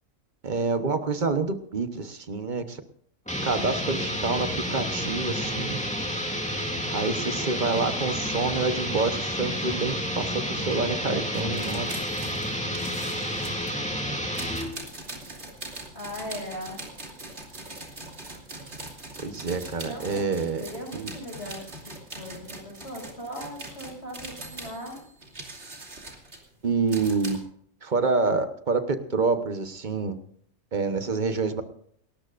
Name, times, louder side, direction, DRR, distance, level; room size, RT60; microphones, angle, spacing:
voice 1, 0.4-2.8 3.4-5.8 6.9-11.9 19.2-20.6 20.9-21.1 26.6-27.4 27.8-30.1 30.7-31.6, right 4 dB, 35° right, 9 dB, 1.1 m, -27 dB
sound 1, 3.3-14.7, equal, 5° left, 2.4 m, -30 dB
sound 2, 11.3-13.8 14.3-27.4, right 2 dB, 55° right, 3.0 m, -42 dB
voice 2, 15.9-16.8 19.8-25.0, equal, 55° left, -1 dB, 6.7 m, -39 dB
28.5 x 13.5 x 2.5 m, 0.65 s
omnidirectional pair, 1.4 m